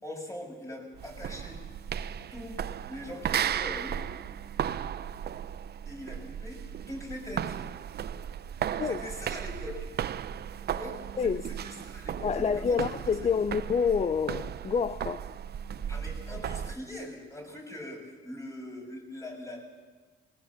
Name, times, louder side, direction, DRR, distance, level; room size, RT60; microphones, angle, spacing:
voice 1, 0.0-1.6 2.3-4.1 5.9-6.6 6.9-7.6 8.8-9.9 10.7-11.3 11.6-12.8 13.2-13.3 15.9-19.6, left 1 dB, 15° left, 6.9 m, -42 dB
sound 1, 1.0-16.8, right 9 dB, 55° right, 0.7 m, -35 dB
voice 2, 12.2-15.2, left 6 dB, 35° left, 0.6 m, -28 dB
21.0 x 19.0 x 7.3 m
cardioid pair, 90°, 20 cm